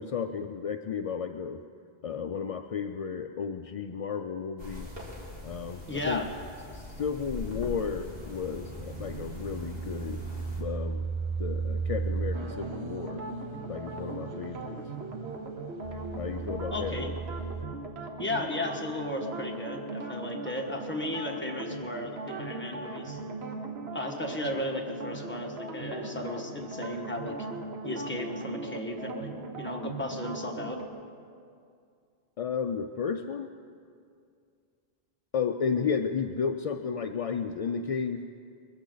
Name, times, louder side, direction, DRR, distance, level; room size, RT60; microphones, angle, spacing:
voice 1, 0.0-1.6 2.0-4.9 5.4-6.2 6.7-10.2 10.6-11.0 11.4-13.2 13.7-14.8 16.2-17.1 32.4-33.5 35.3-38.2, left 6 dB, 55° left, 6 dB, 0.4 m, -33 dB
sound 1, 4.6-10.6, left 1 dB, 65° right, 2.8 m, -42 dB
voice 2, 5.9-6.3 16.7-17.1 18.2-23.2 23.9-27.4 27.8-30.8, left 1 dB, 10° left, 0 dB, 1.3 m, -35 dB
sound 2, 8.2-17.6, right 5 dB, 35° right, 0.5 m, -36 dB
sound 3, 12.5-30.9, right 2 dB, 80° right, 1.4 m, -39 dB
21.5 x 14.5 x 3.9 m, 2.4 s
omnidirectional pair, 1.1 m